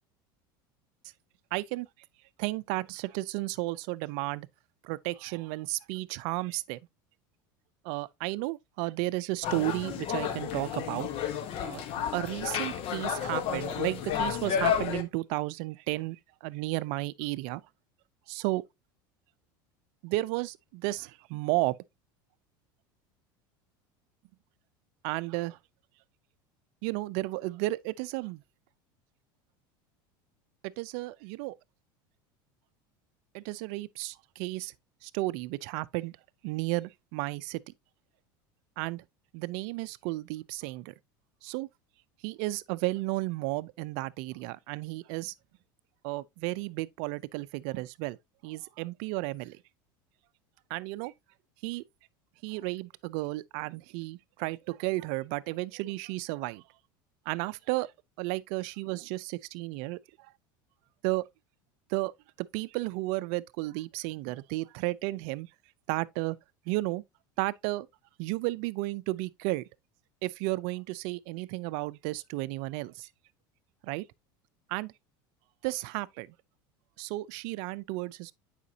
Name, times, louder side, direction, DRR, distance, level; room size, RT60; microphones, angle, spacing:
voice 1, 1.5-1.9 2.4-4.5 4.8-6.8 7.8-11.1 11.6-11.8 12.1-17.6 18.3-18.6 20.0-21.8 25.0-25.6 26.8-28.4 30.8-31.5 33.3-34.7 35.0-36.1 36.4-37.6 38.8-39.0 39.3-40.9 41.4-41.7 42.2-45.3 46.0-48.2 48.4-49.6 50.7-51.1 51.6-51.8 52.4-56.6 57.3-57.9 58.2-60.0 61.0-61.3 61.9-62.1 62.4-65.5 65.9-66.4 66.7-67.0 67.4-67.9 68.2-69.6 70.2-73.1 73.8-74.0 74.7-74.9 75.6-76.3 77.0-78.3, right 20 dB, 65° right, 0.5 m, -33 dB
sound 1, 9.4-15.0, left 9 dB, 55° left, 1.2 m, -31 dB
8.3 x 5.0 x 2.7 m
supercardioid pair, 110°, 12 cm